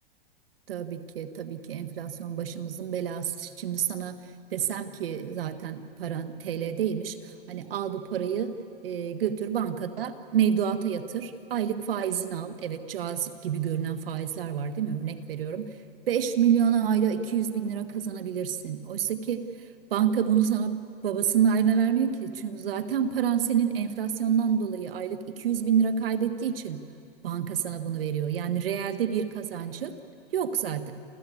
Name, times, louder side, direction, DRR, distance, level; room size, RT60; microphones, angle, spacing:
voice 1, 0.7-4.2 4.5-8.5 8.8-15.7 16.1-19.4 19.9-26.8 27.2-29.9 30.3-30.9, right 8 dB, 75° right, 10 dB, 1.6 m, -28 dB
28.0 x 14.0 x 8.6 m, 2.5 s
hypercardioid pair, 150°, 29 cm